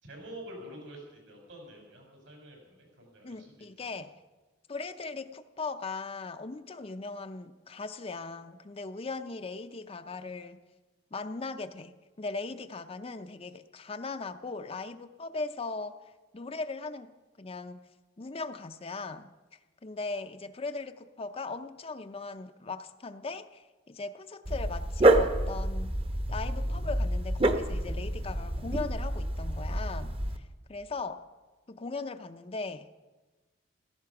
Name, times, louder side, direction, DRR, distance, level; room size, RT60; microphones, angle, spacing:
voice 1, 0.0-3.9, right 1 dB, 75° right, 1 dB, 5.3 m, -47 dB
voice 2, 3.2-4.1 4.7-10.6 11.1-16.0 16.3-17.1 17.4-17.9 18.2-19.3 19.8-25.9 26.3-31.3 31.7-32.9, left 3 dB, 30° left, 8 dB, 0.6 m, -39 dB
Dog, 24.5-30.4, right 1 dB, 30° right, 1.0 m, -28 dB
16.0 x 14.5 x 5.9 m, 1.2 s
head